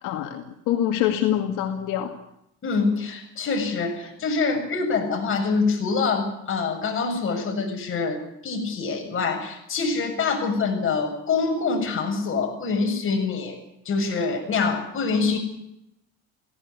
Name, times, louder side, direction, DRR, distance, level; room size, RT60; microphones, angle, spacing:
voice 1, 0.0-2.1, left 11 dB, 75° left, 4 dB, 2.3 m, -25 dB
voice 2, 2.6-13.6 13.9-15.4, left 4 dB, 40° left, 3 dB, 7.3 m, -25 dB
17.5 x 17.0 x 9.7 m, 0.78 s
cardioid pair, 105°, 32 cm